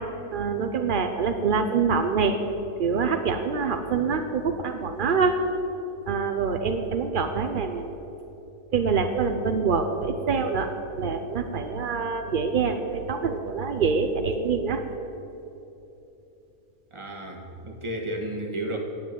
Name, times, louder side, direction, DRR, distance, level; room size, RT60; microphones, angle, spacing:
voice 1, 0.3-2.4 2.8-5.3 6.1-7.8 8.7-10.7 11.0-12.8 13.1-14.8, right 5 dB, 70° right, 6 dB, 0.5 m, -25 dB
voice 2, 16.9-18.8, right 1 dB, 20° right, 1 dB, 1.4 m, -32 dB
9.7 x 8.2 x 9.3 m, 2.9 s
omnidirectional pair, 1.7 m